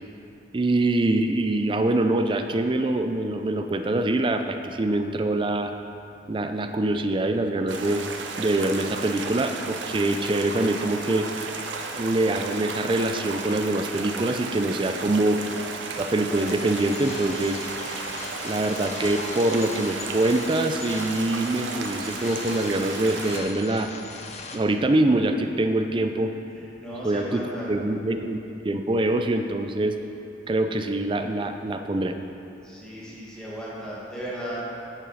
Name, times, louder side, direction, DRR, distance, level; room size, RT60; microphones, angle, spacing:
voice 1, 0.5-5.7 6.3-8.0 8.4-11.3 11.9-15.4 16.0-17.6 18.4-23.9 24.5-26.3 27.0-28.4 28.6-30.0 30.5-32.2, right 2 dB, 25° right, 7 dB, 0.4 m, -24 dB
sound 1, 7.7-23.4, right 4 dB, 90° right, 0.7 m, -34 dB
sound 2, 16.3-24.6, left 3 dB, 40° left, 0.6 m, -39 dB
voice 2, 26.8-27.7 32.6-34.6, equal, 5° left, -7 dB, 1.7 m, -36 dB
8.9 x 6.7 x 4.0 m, 2.7 s
head